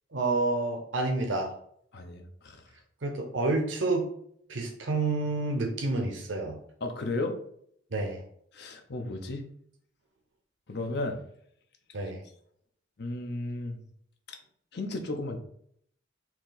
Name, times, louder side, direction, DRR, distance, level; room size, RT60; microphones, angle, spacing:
voice 1, 0.1-1.5 3.0-4.1 4.5-6.6 7.9-8.2 11.9-12.2, right 3 dB, 90° right, 2 dB, 0.8 m, -29 dB
voice 2, 1.9-2.6 6.8-7.3 8.5-9.5 10.7-11.2 13.0-13.8 14.3-14.4 14.7-15.4, left 2 dB, 60° left, 4 dB, 0.7 m, -34 dB
4.6 x 2.9 x 4.0 m, 0.66 s
head